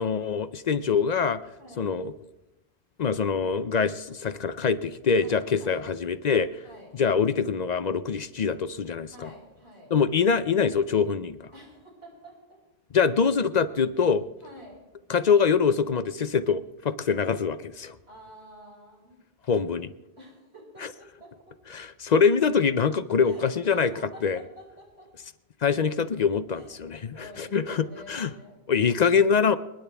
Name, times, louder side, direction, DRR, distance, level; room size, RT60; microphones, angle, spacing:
voice 1, 0.0-1.4 1.8-2.1 3.0-6.5 7.0-9.3 9.9-11.5 12.9-14.2 15.1-18.0 19.5-19.9 21.7-23.9 24.2-24.4 25.6-28.3 28.7-29.6, left 6 dB, 50° left, 13 dB, 0.5 m, -24 dB
voice 2, 1.6-1.9 5.2-5.8 6.6-7.0 9.1-9.9 11.5-12.6 14.0-14.1 14.4-14.8 18.1-19.2 20.2-21.5 23.2-25.1 26.5-26.8 27.1-28.6, equal, 80° right, -3 dB, 6.2 m, -49 dB
28.0 x 10.0 x 3.4 m, 1.0 s
omnidirectional pair, 1.1 m